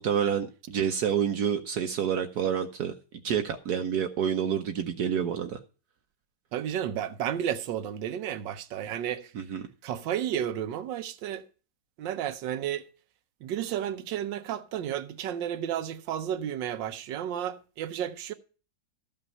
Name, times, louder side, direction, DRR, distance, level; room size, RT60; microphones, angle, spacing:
voice 1, 0.0-2.9 3.2-5.6 9.3-9.6, right 8 dB, 65° right, 1.2 m, -28 dB
voice 2, 6.5-9.3 9.8-11.4 12.0-12.9 13.4-18.3, right 10 dB, 85° right, 1.5 m, -32 dB
13.5 x 5.5 x 5.3 m
omnidirectional pair, 1.9 m